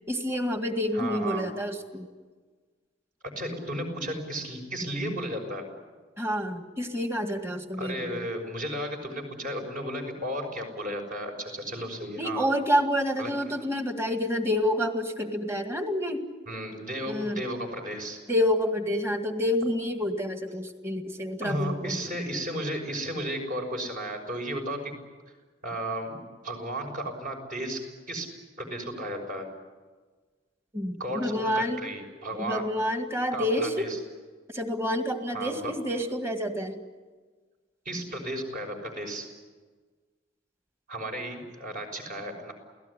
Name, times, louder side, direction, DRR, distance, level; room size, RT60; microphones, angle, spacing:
voice 1, 0.1-2.1 6.2-8.3 12.2-16.2 17.1-17.4 18.3-22.0 30.7-31.9 32.4-33.9 34.5-36.8, left 1 dB, 15° right, 6 dB, 1.9 m, -28 dB
voice 2, 0.9-1.5 3.4-5.7 7.8-12.5 13.2-13.3 16.5-18.2 21.4-25.0 25.6-27.8 28.1-28.3 28.6-29.5 31.0-32.7 33.3-34.0 35.3-35.7 37.8-39.3 40.9-42.5, right 1 dB, 45° right, 3 dB, 6.0 m, -34 dB
29.0 x 18.0 x 10.0 m, 1.4 s
head